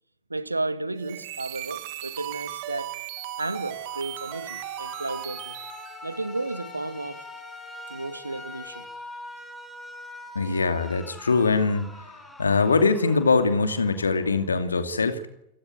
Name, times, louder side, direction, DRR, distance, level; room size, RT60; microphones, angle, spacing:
voice 1, 0.3-2.9 3.4-5.6 6.0-7.2 7.9-8.9, right 2 dB, 80° right, 1.8 m, -33 dB
sound 1, 0.9-6.0, right 17 dB, 50° right, 1.6 m, -37 dB
sound 2, 3.2-9.1, left 17 dB, 40° left, 5.1 m, -48 dB
Alarm, 3.6-14.6, left 1 dB, 5° left, 6.5 m, -44 dB
voice 2, 10.3-12.1 12.4-15.3, left 4 dB, 75° left, 2.7 m, -22 dB
28.5 x 18.5 x 9.5 m
figure-of-eight pair, 90°, 0 cm